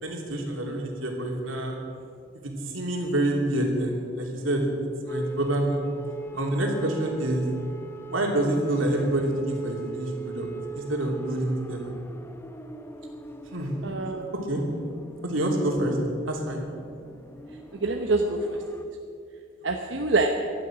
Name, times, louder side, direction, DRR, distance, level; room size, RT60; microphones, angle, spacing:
voice 1, 0.0-1.8 2.3-4.7 5.0-5.8 6.3-7.4 8.1-10.5 10.7-12.0 13.4-13.7 14.5-14.6 15.2-16.0 16.2-16.6, right 1 dB, 85° right, 0 dB, 3.0 m, -27 dB
sound 1, 5.1-18.9, right 4 dB, 10° left, 0.7 m, -40 dB
voice 2, 13.8-14.3 17.8-18.8 19.6-20.3, right 3 dB, 65° right, 2 dB, 1.0 m, -26 dB
18.0 x 12.0 x 6.1 m, 2.5 s
head